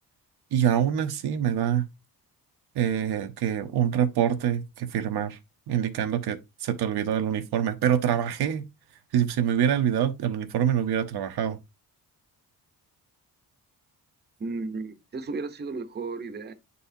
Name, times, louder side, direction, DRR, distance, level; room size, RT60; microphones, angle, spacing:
voice 1, 0.5-1.8 2.7-5.4 5.7-8.6 9.1-11.6, right 9 dB, 85° right, 0.9 m, -25 dB
voice 2, 14.4-16.5, right 3 dB, 25° right, 0.8 m, -34 dB
9.3 x 4.1 x 2.7 m
wide cardioid pair, 155°, 38 cm